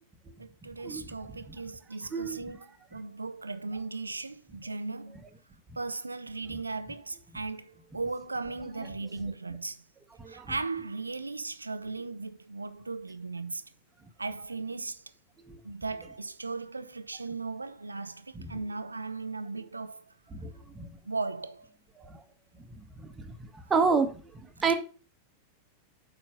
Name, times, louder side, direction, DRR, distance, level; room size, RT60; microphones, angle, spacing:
voice 1, 0.4-2.6 2.9-5.2 5.8-9.8 10.3-13.6 14.2-15.0 15.6-20.0 21.1-21.7, right 3 dB, 80° right, 0.5 m, -37 dB
voice 2, 20.3-20.9 22.0-22.2 23.7-24.3 24.6-24.7, right 5 dB, 15° right, 1.3 m, -29 dB
9.0 x 4.0 x 5.8 m
figure-of-eight pair, 90°, 0 cm